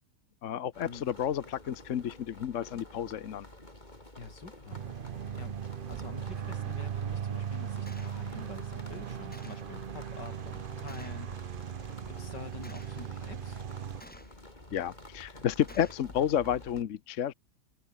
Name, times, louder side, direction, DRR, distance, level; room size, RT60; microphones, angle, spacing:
voice 1, 0.4-3.5 14.7-17.3, left 9 dB, 55° left, 1.0 m, -31 dB
sound 1, 0.7-16.8, left 1 dB, 25° left, 5.0 m, -50 dB
voice 2, 4.2-5.6 5.9-11.7 12.1-13.6, left 4 dB, 75° left, 4.5 m, -47 dB
sound 2, 4.7-14.0, right 8 dB, 70° right, 0.5 m, -38 dB
Gunshot gunfire, 7.9-8.2 9.3-9.7 10.9-11.3 12.6-13.0 14.0-14.5 15.7-16.1, equal, 5° left, 2.8 m, -52 dB
omnidirectional pair, 1.9 m